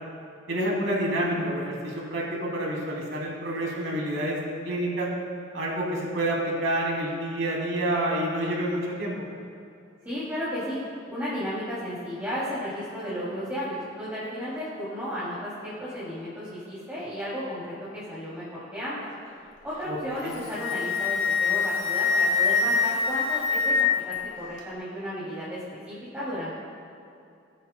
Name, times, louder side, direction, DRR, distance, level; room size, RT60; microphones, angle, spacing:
voice 1, 0.5-4.4 4.6-5.1 5.5-9.1 19.9-20.3, right 1 dB, 70° right, -2 dB, 2.6 m, -28 dB
voice 2, 10.0-10.8 11.1-18.5 18.7-19.1 19.6-23.8 24.1-26.5, equal, 10° right, -11 dB, 2.7 m, -34 dB
Wind instrument woodwind instrument, 20.2-24.1, left 5 dB, 75° left, 2.5 m, -24 dB
20.0 x 9.1 x 2.2 m, 2.6 s
head